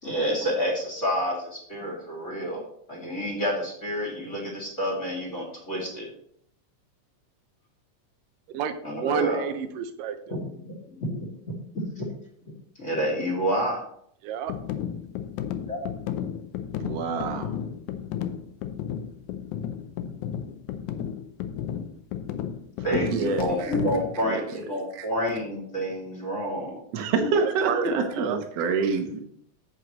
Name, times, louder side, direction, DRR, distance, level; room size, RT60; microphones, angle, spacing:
voice 1, 0.0-2.6 2.9-6.1 8.8-9.4 10.3-11.0 12.0-12.1 12.8-13.8 15.7-15.8 22.8-26.8, equal, 25° left, -3 dB, 2.0 m, -29 dB
voice 2, 9.0-10.2 14.2-14.5 27.4-27.9 28.2-28.4, right 7 dB, 80° right, 9 dB, 2.3 m, -29 dB
sound 1, 14.5-24.1, left 9 dB, 80° left, 1.8 m, -33 dB
voice 3, 16.8-17.5 22.9-23.7 25.0-25.1 26.9-29.2, right 5 dB, 60° right, 4 dB, 1.9 m, -27 dB
9.4 x 7.8 x 3.0 m, 0.67 s
omnidirectional pair, 3.9 m